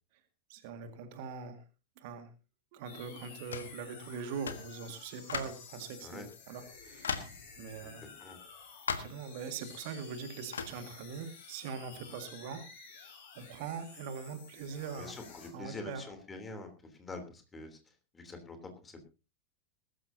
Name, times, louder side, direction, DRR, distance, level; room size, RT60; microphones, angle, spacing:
voice 1, 0.5-1.6 2.0-2.3 2.7-7.3 7.6-8.0 9.0-12.7 13.4-15.2 15.5-16.0, right 6 dB, 50° right, 8 dB, 1.9 m, -42 dB
sound 1, 2.8-15.5, left 5 dB, 50° left, 5.3 m, -52 dB
sound 2, 3.5-3.8 4.5-4.7 5.3-5.7 6.3-6.4 7.0-7.4 8.9-9.2 10.5-10.8, left 6 dB, 70° left, 1.3 m, -37 dB
voice 2, 7.8-8.4 14.9-16.7 17.0-17.8 18.1-18.6 18.8-19.0, left 3 dB, 15° left, 6 dB, 3.2 m, -45 dB
21.0 x 12.5 x 2.8 m, 0.32 s
figure-of-eight pair, 90°, 0 cm